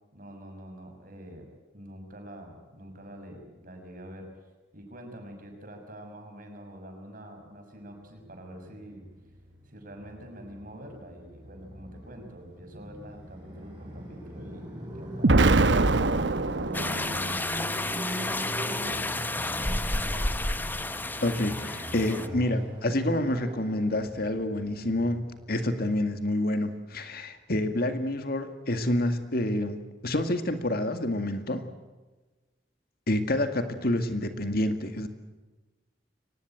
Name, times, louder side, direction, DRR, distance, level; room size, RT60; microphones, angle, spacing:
voice 1, 0.1-4.3 4.7-9.1 9.6-15.9 16.7-17.5 18.2-19.1 19.4-20.4 33.8-34.1, equal, 50° right, 4 dB, 6.3 m, -45 dB
Motorcycle, 8.1-26.3, equal, 25° right, 7.3 m, -41 dB
Explosion, 15.2-17.4, right 3 dB, 75° right, 1.0 m, -23 dB
sound 1, 16.7-22.3, left 2 dB, 10° left, 0.9 m, -31 dB
voice 2, 21.2-25.2 25.5-29.8 30.0-31.6 33.1-35.1, left 1 dB, 55° left, 8 dB, 2.1 m, -28 dB
24.0 x 19.0 x 9.1 m, 1.2 s
head